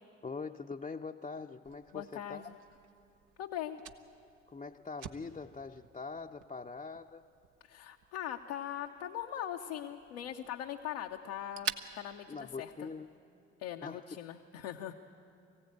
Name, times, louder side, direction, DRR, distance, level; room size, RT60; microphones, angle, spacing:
voice 1, 0.2-2.4 4.5-7.3 12.3-13.1 13.8-14.0, left 4 dB, 20° left, 1 dB, 0.6 m, -43 dB
Fire, 1.6-13.2, right 7 dB, 60° right, 1.0 m, -49 dB
voice 2, 1.9-2.5 3.4-3.8 7.6-12.9 13.6-15.0, left 11 dB, 75° left, 2 dB, 0.8 m, -41 dB
23.5 x 16.5 x 8.8 m, 2.7 s
hypercardioid pair, 40°, 34 cm